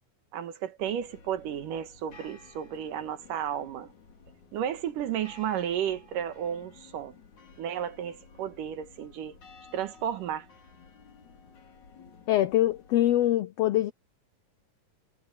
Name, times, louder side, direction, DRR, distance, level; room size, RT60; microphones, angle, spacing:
voice 1, 0.3-3.9 4.5-7.2 7.6-9.4 9.7-10.5, right 9 dB, 80° right, 3.0 m, -33 dB
sound 1, 0.8-13.3, left 4 dB, 65° left, 5.8 m, -54 dB
voice 2, 12.3-13.9, left 13 dB, 90° left, 1.4 m, -24 dB
omnidirectional pair, 3.7 m